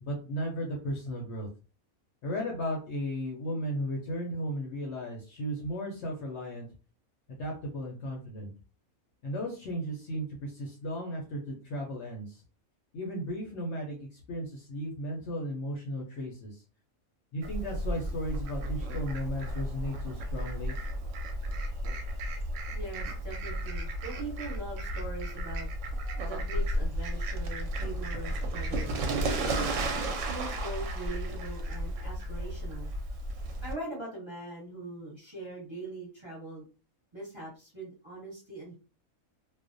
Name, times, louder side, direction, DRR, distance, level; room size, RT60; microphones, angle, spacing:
voice 1, 0.0-1.5 2.2-6.7 7.3-8.5 9.2-12.4 12.9-16.6 17.3-20.7, equal, 65° left, 0 dB, 0.8 m, -35 dB
Fowl, 17.4-33.7, right 1 dB, 70° right, 0.8 m, -33 dB
voice 2, 22.7-25.7 26.3-29.4 29.7-33.1 33.6-36.6 37.1-38.7, right 2 dB, 25° right, -5 dB, 0.8 m, -42 dB
2.4 x 2.0 x 2.5 m, 0.35 s
omnidirectional pair, 1.5 m